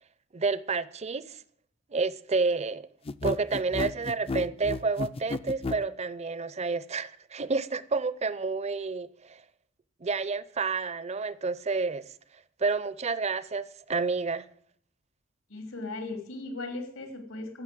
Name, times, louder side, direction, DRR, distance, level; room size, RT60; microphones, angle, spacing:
voice 1, 0.3-1.4 1.9-2.9 3.2-9.4 10.0-12.1 12.6-14.5, right 4 dB, 30° right, 0.6 m, -30 dB
sound 1, 3.0-5.8, left 3 dB, 30° left, 0.4 m, -32 dB
voice 2, 15.5-17.6, left 2 dB, 85° left, 3.2 m, -37 dB
16.0 x 6.3 x 7.6 m
head